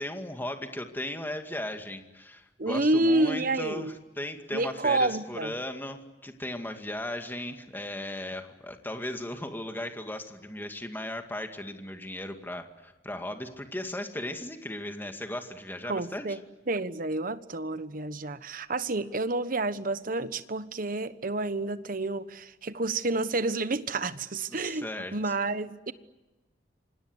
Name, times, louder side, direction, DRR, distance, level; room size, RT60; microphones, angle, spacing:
voice 1, 0.0-16.3 24.5-25.1, left 1 dB, 10° left, 2.2 m, -37 dB
voice 2, 2.6-3.9 4.5-5.5 15.8-16.4 16.7-25.9, right 2 dB, 50° right, 1.2 m, -29 dB
28.5 x 25.5 x 8.0 m
head